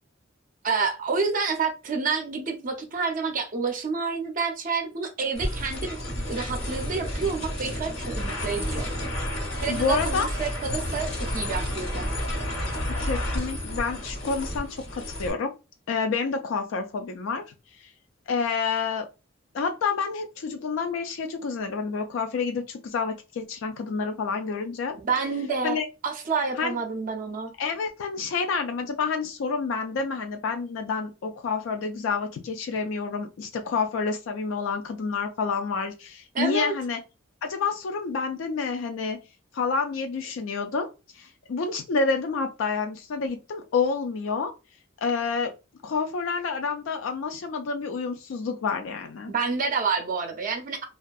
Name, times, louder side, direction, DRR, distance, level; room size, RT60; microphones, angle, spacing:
voice 1, 0.6-6.0 6.3-8.8 9.6-12.1 25.0-25.8 26.0-27.5 36.3-36.7 49.3-50.8, right 5 dB, 45° right, 4 dB, 0.4 m, -28 dB
sound 1, 5.3-15.3, left 1 dB, 65° left, 1.1 m, -31 dB
voice 2, 9.7-10.3 13.0-15.5 15.9-17.4 18.3-19.1 19.5-24.9 25.6-25.8 26.6-26.8 27.6-37.0 37.4-39.2 39.5-40.9 41.1-44.5 45.0-45.5 45.8-49.3, left 5 dB, 90° left, 4 dB, 0.4 m, -28 dB
2.6 x 2.3 x 2.2 m, 0.29 s
head